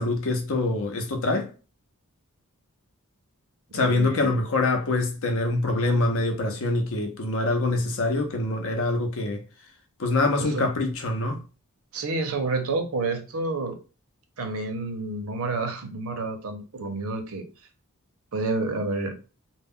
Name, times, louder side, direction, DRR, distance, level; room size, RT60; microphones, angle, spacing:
voice 1, 0.0-1.5 3.7-9.4 10.0-11.4, left 2 dB, 65° left, 0.6 m, -25 dB
voice 2, 3.7-4.4 10.4-10.6 11.9-13.8 14.4-17.4 18.3-19.1, right 3 dB, 70° right, 0.6 m, -29 dB
2.2 x 2.0 x 3.5 m
head